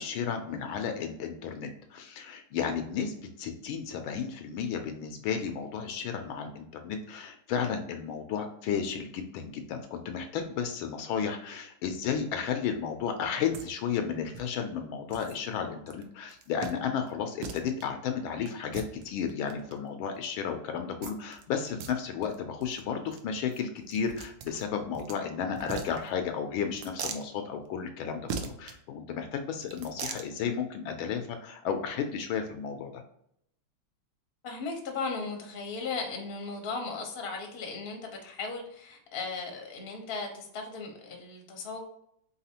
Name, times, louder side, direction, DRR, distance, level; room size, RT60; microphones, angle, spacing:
voice 1, 0.0-33.0, left 7 dB, 75° left, 6 dB, 1.3 m, -33 dB
sound 1, 13.5-13.7 13.9-14.0 14.3-14.4 15.1-15.4 15.9-16.0 16.3-16.7 17.1-17.2 17.4-17.8 18.5-19.7 21.0-21.4 21.7-21.9 22.2-22.3 22.6-22.8 23.1-23.2 23.5-25.2 25.5-26.3 26.7-27.3 28.3-28.8 29.6-30.3, right 6 dB, 75° right, 0.9 m, -39 dB
voice 2, 34.4-41.8, left 4 dB, 40° left, 1 dB, 0.8 m, -36 dB
4.1 x 4.0 x 2.8 m, 0.72 s
omnidirectional pair, 2.4 m